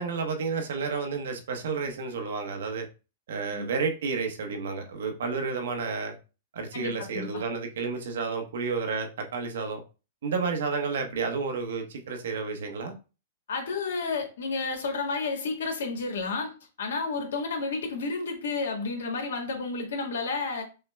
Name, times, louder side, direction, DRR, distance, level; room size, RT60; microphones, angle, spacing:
voice 1, 0.0-2.9 3.3-6.1 6.5-9.8 10.2-13.0, right 5 dB, 75° right, 1.0 m, -31 dB
voice 2, 6.7-7.4 13.5-16.5 16.8-20.6, left 4 dB, 75° left, 1.4 m, -31 dB
5.5 x 2.2 x 3.4 m
hypercardioid pair, 130°, 0 cm